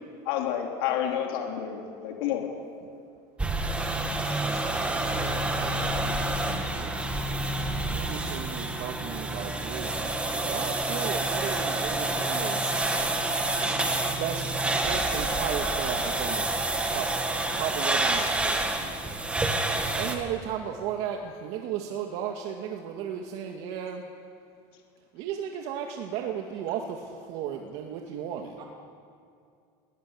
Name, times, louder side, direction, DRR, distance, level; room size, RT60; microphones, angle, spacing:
voice 1, 0.2-2.5 11.5-11.6 13.5-13.7 18.2-18.3, left 10 dB, 80° left, 1 dB, 3.5 m, -30 dB
sound 1, 3.4-20.1, right 2 dB, 10° right, 2.3 m, -28 dB
voice 2, 4.3-6.9 7.9-12.7 14.2-16.6 16.9-17.1 17.5-18.9 20.0-24.0 25.1-28.6, right 8 dB, 60° right, 3 dB, 2.1 m, -35 dB
voice 3, 5.2-6.2 12.7-13.1 28.6-28.7, right 4 dB, 40° right, 0 dB, 3.2 m, -48 dB
20.5 x 19.5 x 9.8 m, 2.4 s
cardioid pair, 150°, 12 cm